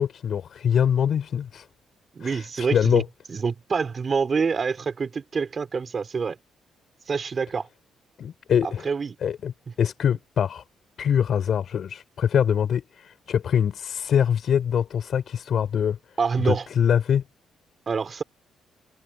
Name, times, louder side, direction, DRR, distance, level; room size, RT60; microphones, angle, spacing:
voice 1, 0.0-1.7 2.2-3.0 8.2-8.8 9.2-9.5 9.8-10.6 11.0-16.0 16.4-17.2, left 8 dB, 60° left, 4.6 m, -23 dB
voice 2, 2.1-3.0 3.3-6.4 7.1-7.7 8.8-9.2 16.2-16.7 17.9-18.2, right 5 dB, 40° right, 4.0 m, -26 dB
cardioid pair, 90°, 0 cm